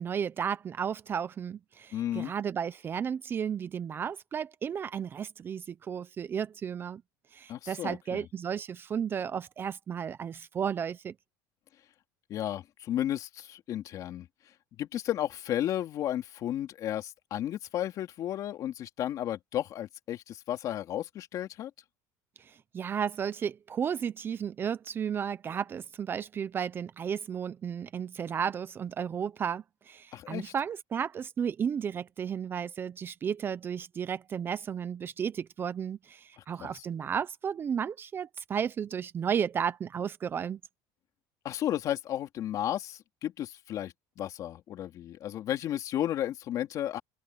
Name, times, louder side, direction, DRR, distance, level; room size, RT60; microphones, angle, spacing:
voice 1, 0.0-7.0 7.3-11.1 22.4-40.6, right 7 dB, 25° right, 0.7 m, -33 dB
voice 2, 1.9-2.3 7.5-8.3 12.3-14.3 14.8-21.7 30.1-30.5 36.4-36.7 41.4-47.0, left 12 dB, 45° left, 3.2 m, -33 dB
open air
cardioid pair, 145°, 8 cm